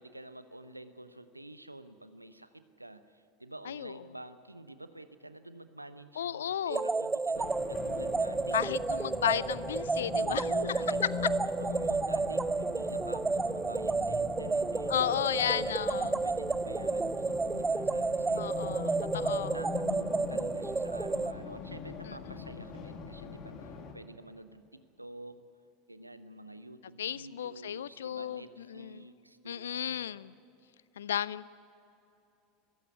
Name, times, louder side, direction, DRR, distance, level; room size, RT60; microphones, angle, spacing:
voice 1, 0.0-8.6 10.1-15.9 16.2-25.4 25.9-30.0, right 1 dB, 90° right, 12 dB, 0.9 m, -48 dB
voice 2, 6.2-6.8 8.5-10.5 14.9-16.2 18.4-19.6 22.1-22.2 27.0-28.4 28.7-29.0 29.5-30.3 31.0-31.5, left 10 dB, 70° left, 20 dB, 0.4 m, -33 dB
sound 1, 6.7-21.3, right 4 dB, 15° right, 0.5 m, -31 dB
Race car auto racing, 7.3-23.9, left 5 dB, 45° left, 2.4 m, -41 dB
21.5 x 15.0 x 9.4 m, 2.9 s
figure-of-eight pair, 80°, 0 cm